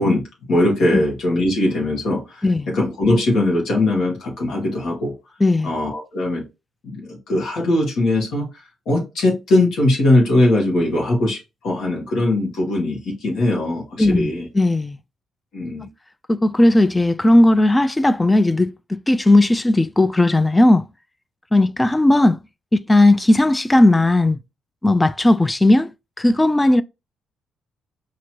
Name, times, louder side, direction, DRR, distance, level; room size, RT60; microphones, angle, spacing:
voice 1, 0.0-5.1 5.6-6.5 6.8-14.5 15.5-15.9, left 1 dB, 70° left, 1.4 m, -20 dB
voice 2, 5.4-5.7 14.0-15.0 16.3-20.9 21.5-22.4 22.7-24.4 24.8-25.9 26.2-26.8, left 1 dB, 15° left, 0.3 m, -16 dB
4.4 x 2.9 x 2.9 m
cardioid pair, 90°, 0 cm